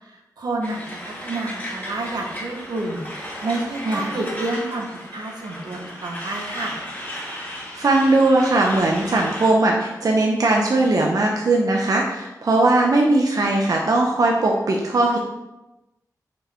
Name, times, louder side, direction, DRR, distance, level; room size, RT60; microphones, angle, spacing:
voice 1, 0.1-6.8, right 2 dB, 85° right, 1 dB, 1.3 m, -29 dB
Truck, 0.6-9.5, equal, 25° left, 2.6 m, -35 dB
voice 2, 7.7-15.2, right 2 dB, 60° right, -1 dB, 0.8 m, -19 dB
6.6 x 5.3 x 4.4 m, 1.0 s
wide cardioid pair, 120°, 7 cm